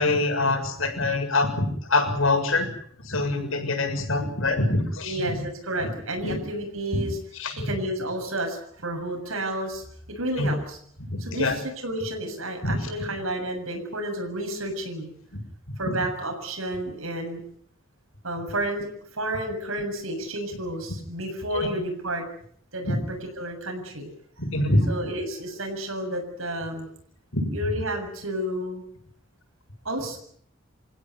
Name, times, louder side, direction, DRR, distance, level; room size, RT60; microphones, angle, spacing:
voice 1, 0.0-2.7 3.0-5.4 6.2-6.4 6.9-7.0 7.4-7.7 10.4-10.5 11.1-11.6 12.6-12.8 15.8-15.9 21.5-21.7 22.8-23.0 24.4-24.9 27.3-27.5, left 2 dB, 80° left, 5 dB, 7.1 m, -24 dB
voice 2, 5.0-7.2 7.6-10.8 11.2-15.1 15.8-17.4 18.2-18.9 19.1-22.3 22.7-24.1 24.9-26.9 27.5-28.8 29.8-30.2, right 1 dB, 85° right, 3 dB, 7.2 m, -31 dB
29.5 x 16.0 x 9.5 m, 0.63 s
head